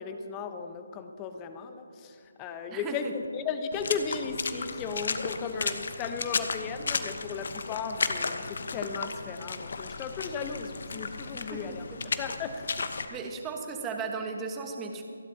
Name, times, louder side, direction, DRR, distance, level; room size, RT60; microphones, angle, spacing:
voice 1, 0.0-11.9 12.2-12.7 13.1-13.2, left 5 dB, 20° left, 8 dB, 1.0 m, -36 dB
voice 2, 2.7-3.1 11.3-11.6 13.1-15.0, right 4 dB, 15° right, 3 dB, 1.4 m, -36 dB
Water / Splash splatter, 3.7-13.1, left 4 dB, 55° left, 1.0 m, -34 dB
28.0 x 11.0 x 2.9 m, 2.5 s
figure-of-eight pair, 150°, 0 cm